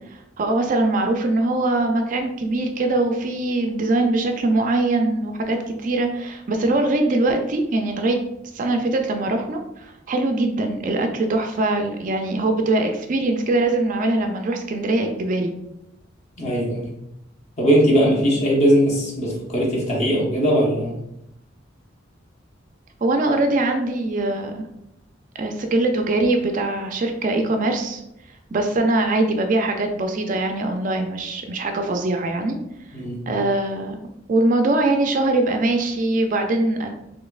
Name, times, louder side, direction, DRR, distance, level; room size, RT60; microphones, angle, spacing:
voice 1, 0.1-8.2 8.5-15.5 23.0-24.7 25.4-28.0 28.5-32.6 33.3-34.0 34.3-36.9, right 2 dB, 40° right, 5 dB, 0.4 m, -22 dB
voice 2, 16.4-16.9 17.6-21.0 32.9-33.2, equal, 35° left, -4 dB, 1.0 m, -19 dB
4.1 x 3.1 x 2.3 m, 0.83 s
head